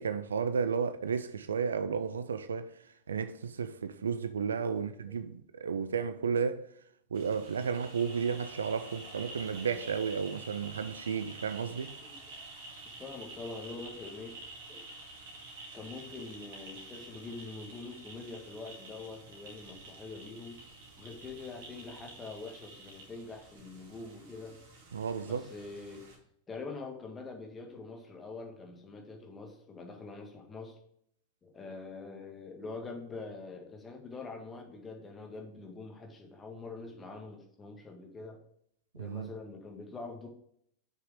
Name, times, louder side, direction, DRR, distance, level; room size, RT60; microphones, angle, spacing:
voice 1, 0.0-2.7 3.1-6.7 7.1-11.9 24.9-25.4 39.0-39.3, right 6 dB, 70° right, 0.5 m, -33 dB
sound 1, 7.1-26.2, right 2 dB, 55° right, 2.3 m, -49 dB
voice 2, 12.0-12.3 13.0-14.4 14.7-14.9 15.7-20.6 21.0-24.6 25.2-26.1 26.5-30.8 31.4-38.4 38.9-40.3, left 3 dB, 20° left, 1.9 m, -44 dB
6.9 x 6.0 x 4.9 m
figure-of-eight pair, 90°, 0 cm